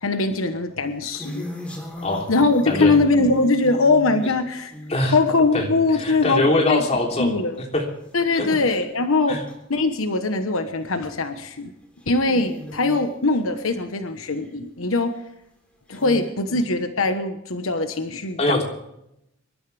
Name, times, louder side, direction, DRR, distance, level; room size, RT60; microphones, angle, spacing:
voice 1, 0.0-1.5 2.3-4.7 5.1-6.8 7.2-7.6 8.1-9.4 9.7-11.7 12.1-15.1 15.9-18.6, left 3 dB, 85° left, 8 dB, 1.2 m, -21 dB
sound 1, 0.8-5.9 6.4-6.8 7.2-7.3 7.5-7.6 8.1-8.2 9.5-9.6 10.6-10.8 11.4-11.5 11.8-13.4 14.0-14.5 15.2-15.3 15.9-16.3, left 1 dB, 5° left, 3.5 m, -37 dB
voice 2, 6.0-7.4 7.7-7.8 8.3-8.6 9.3-9.4 18.4-18.6, left 2 dB, 30° left, 0 dB, 3.3 m, -22 dB
25.5 x 12.5 x 3.5 m, 0.82 s
head